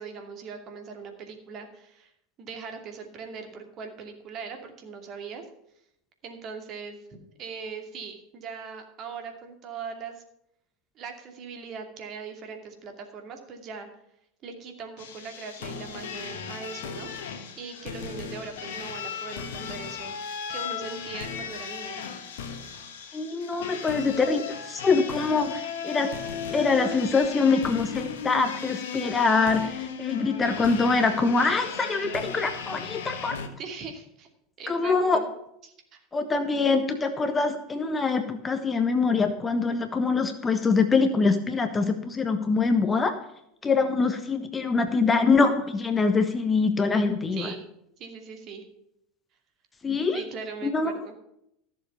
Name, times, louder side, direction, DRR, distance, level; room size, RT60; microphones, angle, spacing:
voice 1, 0.0-2.1 2.4-5.5 6.2-10.2 10.9-13.9 14.4-17.1 17.6-22.0 33.6-34.3 34.6-35.3 35.6-36.0 47.3-47.6 48.0-48.6 50.1-51.1, right 5 dB, 40° right, 5 dB, 2.6 m, -40 dB
sound 1, 15.0-33.5, left 7 dB, 60° left, 1.5 m, -36 dB
voice 2, 23.1-26.1 26.5-33.4 34.7-35.2 36.1-43.1 43.6-47.5 49.8-50.2 50.6-50.9, left 4 dB, 20° left, 8 dB, 1.3 m, -24 dB
15.0 x 7.3 x 5.8 m, 0.75 s
figure-of-eight pair, 80°, 0 cm